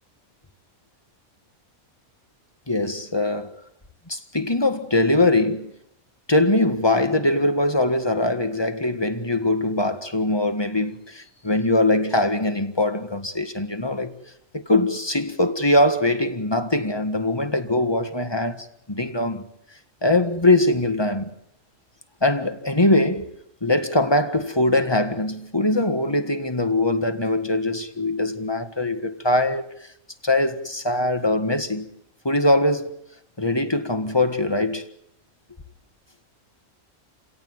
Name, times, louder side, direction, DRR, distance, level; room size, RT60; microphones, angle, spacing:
voice 1, 2.7-3.5 4.1-5.7 6.3-14.2 14.5-19.4 20.0-21.3 22.2-23.3 23.6-29.7 30.2-31.9 32.2-33.0 33.4-34.8, left 2 dB, 20° left, 1.7 m, -22 dB
30.0 x 17.5 x 9.2 m
omnidirectional pair, 1.5 m